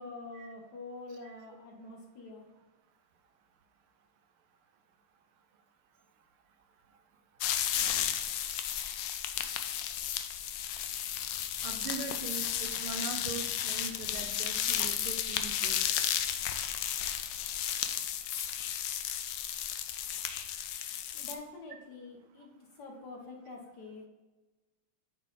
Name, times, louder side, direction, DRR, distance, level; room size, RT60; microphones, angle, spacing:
voice 1, 0.0-2.5 21.1-24.1, left 3 dB, 55° left, 1 dB, 1.4 m, -46 dB
sound 1, 7.4-21.3, left 10 dB, 75° left, 1.1 m, -33 dB
voice 2, 11.6-15.8, right 5 dB, 75° right, 7 dB, 1.5 m, -41 dB
9.0 x 3.9 x 4.0 m, 1.2 s
omnidirectional pair, 2.4 m